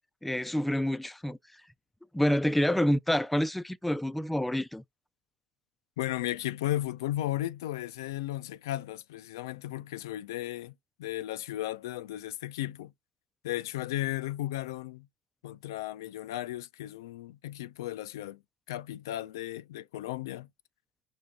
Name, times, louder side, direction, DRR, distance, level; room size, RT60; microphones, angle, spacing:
voice 1, 0.2-1.6 2.1-4.8, equal, 5° left, 0.4 m, -28 dB
voice 2, 6.0-10.7 11.0-12.9 13.4-15.1 15.4-18.4 18.7-20.5, left 14 dB, 85° left, 0.4 m, -35 dB
5.4 x 2.8 x 3.5 m
hypercardioid pair, 80°, 2 cm